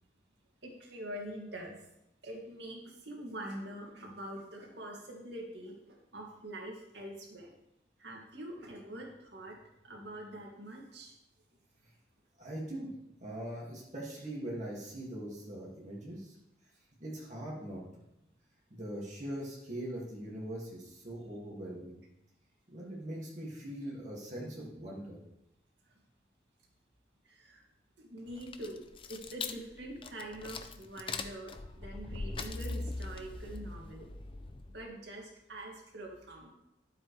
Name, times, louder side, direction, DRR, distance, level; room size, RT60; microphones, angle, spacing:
voice 1, 0.6-1.7 2.2-7.5 8.0-9.6 9.8-11.1 24.4-24.7 25.9-26.0 27.2-27.6 28.0-28.8 29.1-34.1 34.7-36.5, right 1 dB, 75° right, -1 dB, 2.3 m, -45 dB
voice 2, 12.4-12.9 13.2-16.3 17.0-17.8 18.7-22.0 22.7-25.2, right 1 dB, 40° right, -4 dB, 2.1 m, -41 dB
sound 1, 28.3-34.8, left 3 dB, 30° left, 0.5 m, -41 dB
12.5 x 7.6 x 3.3 m, 0.87 s
head